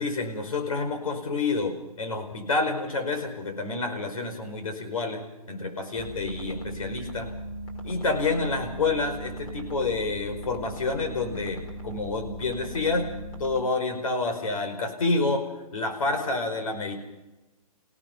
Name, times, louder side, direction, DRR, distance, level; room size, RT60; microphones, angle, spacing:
voice 1, 0.0-7.3 7.8-13.1 13.4-15.5 15.7-17.0, left 3 dB, 65° left, 5 dB, 5.1 m, -28 dB
sound 1, 5.9-13.6, right 1 dB, 25° left, 4.0 m, -38 dB
29.0 x 17.5 x 5.3 m, 1.0 s
hypercardioid pair, 145°, 19 cm